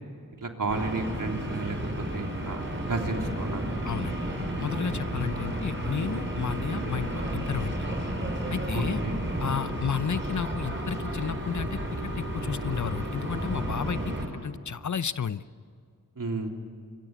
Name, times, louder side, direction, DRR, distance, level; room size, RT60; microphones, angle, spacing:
voice 1, 0.4-1.8 2.1-3.7 8.7-9.2 16.2-16.6, right 3 dB, 65° right, 2 dB, 3.4 m, -32 dB
sound 1, 0.7-14.2, right 1 dB, 35° right, 6.7 m, -32 dB
voice 2, 3.8-4.2 4.6-7.8 8.5-9.0 9.4-15.4, left 7 dB, 55° left, 15 dB, 0.7 m, -32 dB
25.5 x 23.5 x 8.2 m, 2.2 s
cardioid pair, 45°, 35 cm